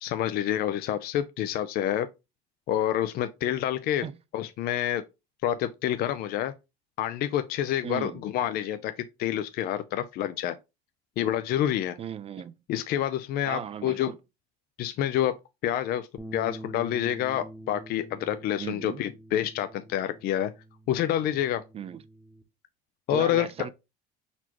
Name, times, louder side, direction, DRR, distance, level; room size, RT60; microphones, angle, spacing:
voice 1, 0.0-2.1 2.7-4.0 4.3-5.0 5.4-6.5 7.0-8.9 9.2-10.6 11.2-12.0 12.7-14.1 14.8-15.3 15.6-20.5 20.9-21.6 23.1-23.5, left 11 dB, 50° left, 0.5 m, -28 dB
voice 2, 7.8-8.2 12.0-12.5 13.5-14.1 18.6-19.0 21.7-22.0 23.1-23.7, right 8 dB, 30° right, 0.4 m, -36 dB
sound 1, 16.2-22.4, right 1 dB, ahead, 0.9 m, -46 dB
4.5 x 4.1 x 2.9 m
supercardioid pair, 100°, 20 cm